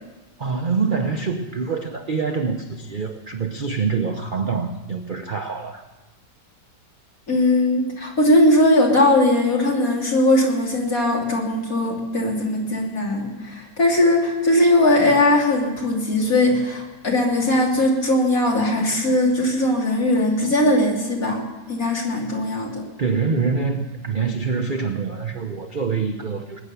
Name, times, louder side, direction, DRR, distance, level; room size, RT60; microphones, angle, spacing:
voice 1, 0.4-5.8 23.0-26.6, right 5 dB, 40° right, 4 dB, 0.7 m, -25 dB
voice 2, 7.3-21.4 21.7-22.8, left 1 dB, 50° left, -2 dB, 3.4 m, -19 dB
21.0 x 9.6 x 6.8 m, 1.1 s
omnidirectional pair, 1.9 m